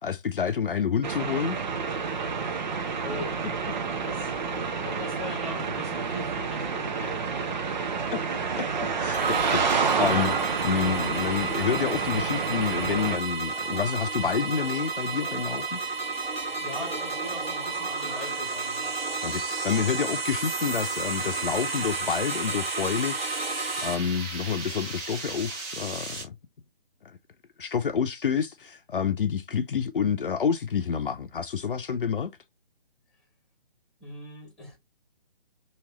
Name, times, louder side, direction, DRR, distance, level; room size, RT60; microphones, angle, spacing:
voice 1, 0.0-1.6 8.1-8.2 8.6-15.8 19.2-23.2 23.8-26.4 27.0-27.2 27.6-32.3, left 7 dB, 65° left, 0.7 m, -28 dB
sound 1, 1.0-13.2, right 5 dB, 50° right, 0.7 m, -29 dB
voice 2, 2.2-3.6 4.0-7.9 16.6-18.9 34.0-34.8, left 2 dB, ahead, 1.4 m, -41 dB
sound 2, 9.1-23.9, right 4 dB, 80° right, 1.5 m, -32 dB
sound 3, 15.7-26.2, right 4 dB, 20° right, 1.0 m, -39 dB
3.1 x 3.0 x 2.9 m
figure-of-eight pair, 145°, 29 cm